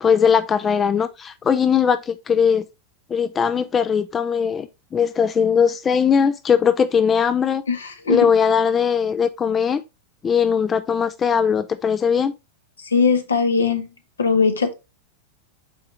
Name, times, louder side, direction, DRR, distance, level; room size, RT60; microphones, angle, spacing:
voice 1, 0.0-2.6 3.1-4.7 4.9-7.6 8.1-9.8 10.2-12.3, left 7 dB, 20° left, 0.4 m, -19 dB
voice 2, 7.7-8.3 12.9-13.8 14.2-14.7, left 5 dB, 70° left, 1.0 m, -19 dB
8.4 x 3.6 x 3.2 m
figure-of-eight pair, 90°, 0 cm